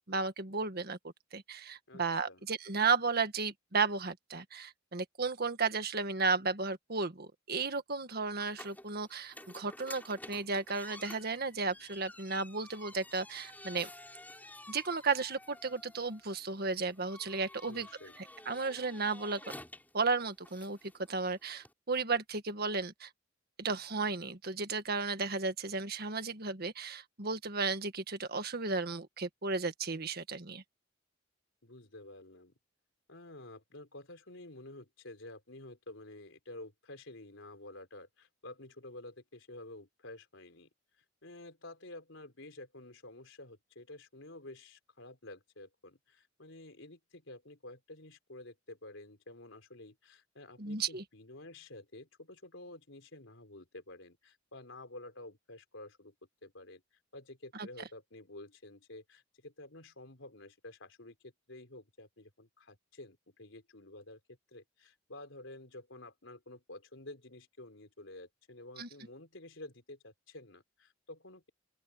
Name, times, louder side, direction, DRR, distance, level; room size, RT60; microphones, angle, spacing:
voice 1, 0.1-1.0 1.3-13.9 14.7-17.9 18.2-19.4 19.9-20.8 21.1-23.1 23.6-30.6 50.6-51.0 57.5-57.7 68.8-68.9, right 4 dB, 55° right, 1.7 m, -34 dB
voice 2, 1.9-2.4 17.6-18.2 31.6-32.5 33.1-40.7 41.2-56.1 56.4-56.8 57.1-71.5, left 2 dB, 80° left, 3.9 m, -50 dB
sound 1, 8.4-21.7, left 1 dB, 10° left, 6.4 m, -52 dB
open air
head